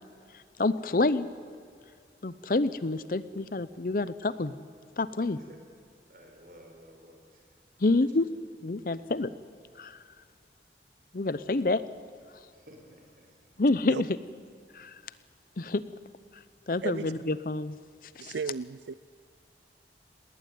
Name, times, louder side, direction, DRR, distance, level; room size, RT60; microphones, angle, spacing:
voice 1, 0.3-1.3 2.2-4.6 5.0-5.4 7.8-8.3 8.6-9.3 9.8-10.0 11.1-11.8 13.6-14.1 14.7-15.0 15.6-15.8 16.7-17.8 18.2-18.3, left 2 dB, 50° left, 15 dB, 0.7 m, -28 dB
voice 2, 5.2-5.6 6.1-7.6 7.8-8.3 12.4-13.4, equal, 50° right, 2 dB, 5.1 m, -54 dB
voice 3, 16.8-17.1 18.2-18.9, right 5 dB, 85° right, 16 dB, 0.5 m, -34 dB
19.5 x 19.0 x 9.4 m, 2.2 s
head